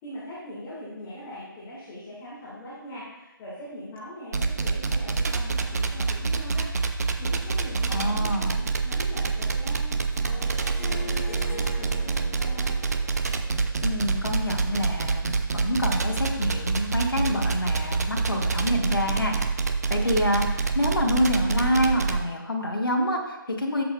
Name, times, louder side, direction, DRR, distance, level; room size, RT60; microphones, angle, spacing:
voice 1, 0.0-12.8, equal, 15° left, -9 dB, 1.8 m, -42 dB
sound 1, 4.3-22.2, right 4 dB, 45° right, 0.6 m, -26 dB
voice 2, 7.9-8.6 13.8-19.5 19.9-23.8, equal, 75° left, 0 dB, 1.6 m, -27 dB
Harp, 10.1-15.1, left 3 dB, 30° left, 1.3 m, -43 dB
12.0 x 7.7 x 2.3 m, 1.0 s
figure-of-eight pair, 150°, 12 cm